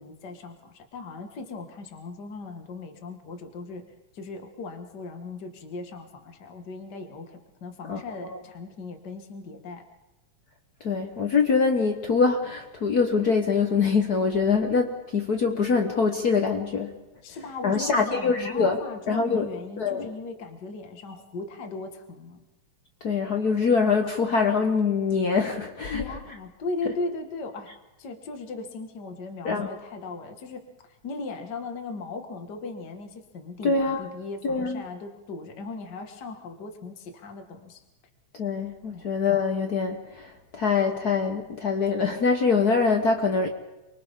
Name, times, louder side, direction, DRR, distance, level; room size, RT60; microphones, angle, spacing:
voice 1, 0.0-3.9 4.1-9.8 17.2-22.4 25.9-27.7 28.0-37.8 38.9-39.0, left 3 dB, 40° left, 5 dB, 2.0 m, -38 dB
voice 2, 10.8-17.0 17.6-18.8 19.1-19.5 19.8-20.1 23.0-26.0 29.4-29.7 33.6-34.0 34.4-34.8 38.4-40.0 40.5-43.5, left 5 dB, 65° left, 4 dB, 0.9 m, -24 dB
29.5 x 24.0 x 3.7 m, 1.0 s
omnidirectional pair, 3.3 m